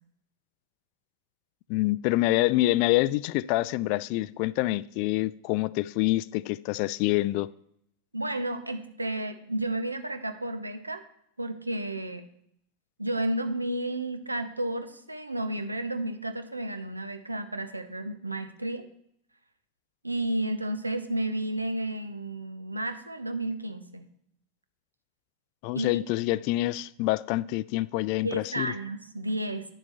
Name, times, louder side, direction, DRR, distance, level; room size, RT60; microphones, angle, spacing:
voice 1, 1.7-7.5 25.6-28.7, left 17 dB, 45° left, 0.3 m, -26 dB
voice 2, 8.1-11.0 11.4-12.2 13.0-18.9 20.0-24.1 25.7-26.1 28.2-29.7, right 1 dB, 85° right, 0.8 m, -32 dB
10.0 x 6.9 x 4.1 m
figure-of-eight pair, 90°, 0 cm